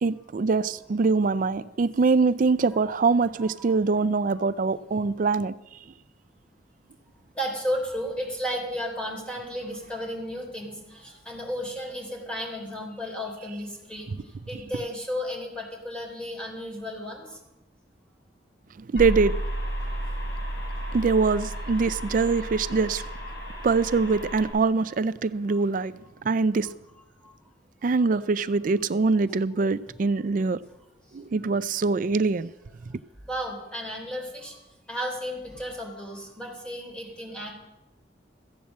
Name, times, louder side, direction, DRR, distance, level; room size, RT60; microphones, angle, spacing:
voice 1, 0.0-5.5 18.8-19.4 20.9-23.0 23.6-25.9 26.2-26.7 27.8-30.6 31.1-32.5, right 4 dB, 50° right, 0.4 m, -23 dB
voice 2, 7.3-14.1 14.5-17.4 23.3-23.4 25.5-25.6 27.2-27.3 33.3-34.6 34.9-37.5, equal, 5° left, 3.3 m, -33 dB
sound 1, 19.0-24.5, right 1 dB, 75° left, 5.1 m, -32 dB
14.5 x 8.4 x 7.2 m
head